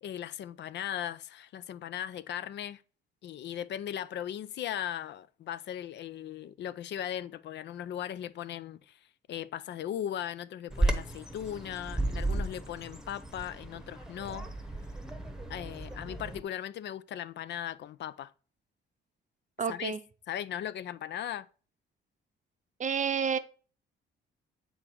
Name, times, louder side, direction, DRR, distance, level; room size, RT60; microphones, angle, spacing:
voice 1, 0.0-2.8 3.2-9.0 9.3-14.5 15.5-18.3 19.7-19.9 20.3-21.5, left 10 dB, 60° left, 0.4 m, -38 dB
Bird vocalization bird call bird song, 10.7-16.4, right 2 dB, 5° right, 1.0 m, -34 dB
voice 2, 19.6-20.0 22.8-23.4, right 7 dB, 40° right, 0.6 m, -29 dB
7.9 x 3.9 x 4.4 m
cardioid pair, 90°, 20 cm